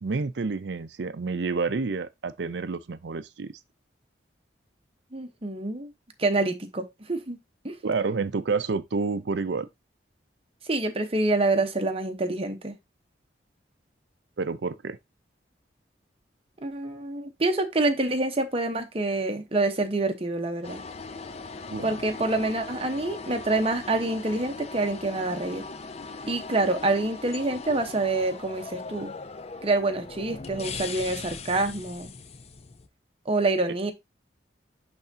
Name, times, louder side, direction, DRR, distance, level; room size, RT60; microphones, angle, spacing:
voice 1, 0.0-3.5 7.8-9.7 14.4-15.0 21.7-21.9, right 4 dB, 70° right, 0.5 m, -29 dB
voice 2, 5.1-5.9 6.2-7.4 7.6-7.8 10.7-12.7 16.6-20.8 21.8-25.6 26.3-29.1 29.6-32.1 33.3-33.9, right 2 dB, 30° right, 1.0 m, -26 dB
sound 1, 20.6-32.9, left 4 dB, 35° left, 0.5 m, -39 dB
10.5 x 3.5 x 2.7 m
head